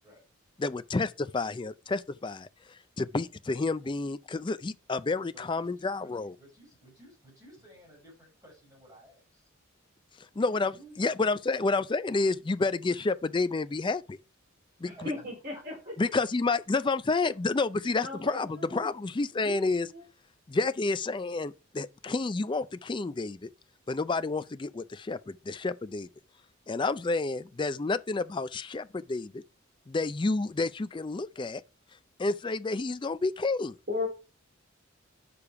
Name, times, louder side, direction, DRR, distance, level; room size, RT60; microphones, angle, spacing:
voice 1, 0.6-6.3 10.2-14.2 14.8-15.1 16.0-19.9 20.5-23.5 23.9-26.1 26.7-29.4 29.9-31.6 32.2-33.8, left 3 dB, 20° left, 0.4 m, -30 dB
voice 2, 5.3-9.5 10.3-11.0 14.8-15.2 15.5-16.1, right 1 dB, 15° right, 6.0 m, -55 dB
voice 3, 14.9-15.9 18.0-18.9 19.4-20.0 33.9-34.1, left 3 dB, 50° right, 4.0 m, -36 dB
8.7 x 6.8 x 4.7 m
head